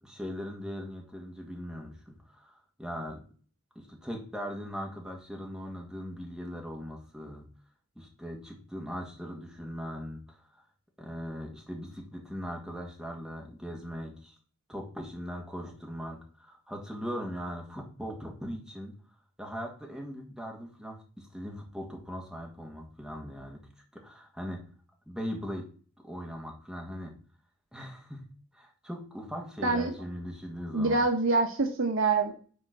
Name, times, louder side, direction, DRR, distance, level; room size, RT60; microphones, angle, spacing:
voice 1, 0.0-3.2 3.8-7.4 8.0-10.6 11.0-14.4 14.7-18.9 19.4-23.6 24.0-24.6 25.1-25.6 26.0-27.1 27.7-28.2 28.5-31.0, equal, 5° right, 0 dB, 1.9 m, -40 dB
voice 2, 29.6-29.9 30.7-32.3, right 3 dB, 75° right, 4 dB, 1.0 m, -25 dB
6.4 x 4.4 x 6.0 m, 0.40 s
head